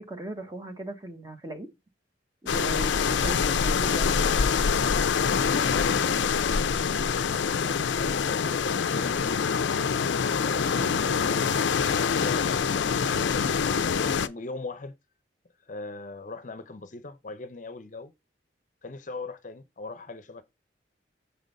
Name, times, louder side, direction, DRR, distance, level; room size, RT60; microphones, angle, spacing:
voice 1, 0.0-1.7 2.4-4.5 10.6-11.0, right 1 dB, 20° right, 1.1 m, -38 dB
sound 1, 2.5-14.3, left 6 dB, 90° left, 0.5 m, -25 dB
voice 2, 5.4-7.0 7.2-9.7 10.2-11.1 11.9-15.0 15.6-18.1 18.8-20.4, left 3 dB, 45° left, 0.6 m, -40 dB
6.9 x 3.9 x 5.2 m
head